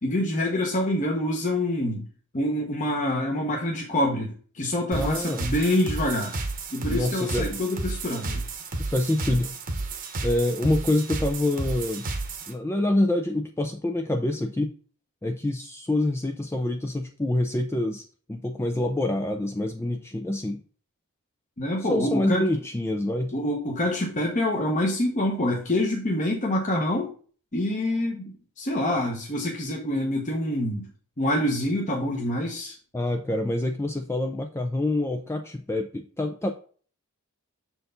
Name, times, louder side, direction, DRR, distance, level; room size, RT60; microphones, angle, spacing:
voice 1, 0.0-2.0 2.3-6.4 6.7-8.4 21.6-22.5 23.3-27.1 27.5-30.9 31.2-32.8, left 1 dB, 35° left, 0 dB, 1.0 m, -26 dB
voice 2, 4.9-5.5 6.9-7.6 8.8-9.5 10.2-12.1 12.5-14.7 15.2-18.0 18.3-20.6 21.8-23.4 32.9-36.5, left 1 dB, 10° left, 5 dB, 0.4 m, -26 dB
sound 1, 4.9-12.5, right 2 dB, 40° right, 1.0 m, -32 dB
6.7 x 4.6 x 3.8 m, 0.42 s
head